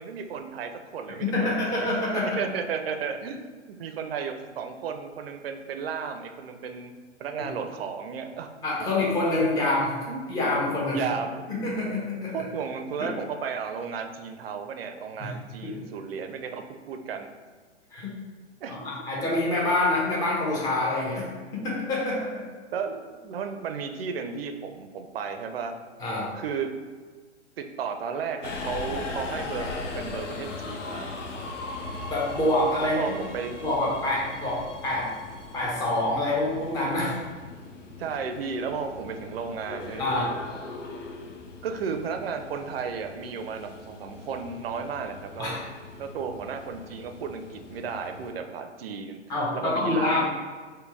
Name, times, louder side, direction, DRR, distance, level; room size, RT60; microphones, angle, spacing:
voice 1, 0.0-6.9 7.2-8.5 8.8-9.0 10.1-10.5 10.9-11.5 12.3-17.3 18.6-18.9 22.7-25.7 26.3-26.7 27.6-31.1 32.8-33.6 38.0-40.3 41.6-45.6 46.0-49.2 49.6-50.3, right 6 dB, 55° right, 6 dB, 0.5 m, -34 dB
voice 2, 1.2-2.4 7.4-7.5 8.6-9.9 10.3-11.0 11.5-12.4 13.0-13.1 15.2-15.3 15.6-15.8 17.9-18.1 18.7-21.2 21.5-22.5 26.0-26.3 32.1-33.2 33.6-35.1 35.5-37.2 40.0-40.3 45.4-45.6 49.3-50.3, left 2 dB, 10° left, -5 dB, 0.6 m, -26 dB
Subway metro underground, 28.4-48.3, left 3 dB, 85° left, 0.6 m, -39 dB
4.1 x 2.1 x 3.3 m, 1.5 s
figure-of-eight pair, 115°, 36 cm